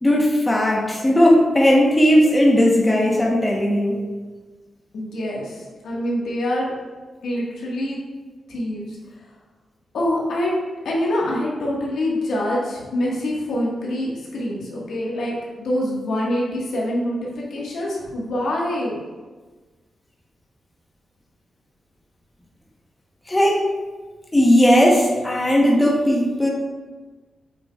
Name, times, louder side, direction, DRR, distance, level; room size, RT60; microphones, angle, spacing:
voice 1, 0.0-4.0 23.3-23.7 24.3-26.5, equal, 15° left, -2 dB, 1.1 m, -17 dB
voice 2, 4.9-6.7 7.2-8.0 8.5-9.0 9.9-10.5 10.8-19.0, left 1 dB, 85° left, -5 dB, 1.6 m, -25 dB
7.7 x 6.0 x 2.4 m, 1.4 s
cardioid pair, 95°, 0 cm